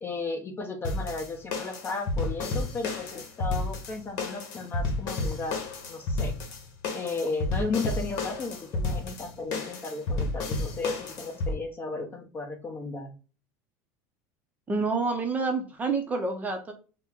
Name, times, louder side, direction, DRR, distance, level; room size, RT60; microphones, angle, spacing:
voice 1, 0.0-5.6 5.9-6.3 6.9-13.1, left 3 dB, 25° left, 4 dB, 0.9 m, -34 dB
sound 1, 0.8-11.5, left 2 dB, 60° left, 1.2 m, -31 dB
voice 2, 14.7-16.7, right 4 dB, 20° right, 4 dB, 0.7 m, -28 dB
4.3 x 2.2 x 3.6 m, 0.35 s
supercardioid pair, 140°, 8 cm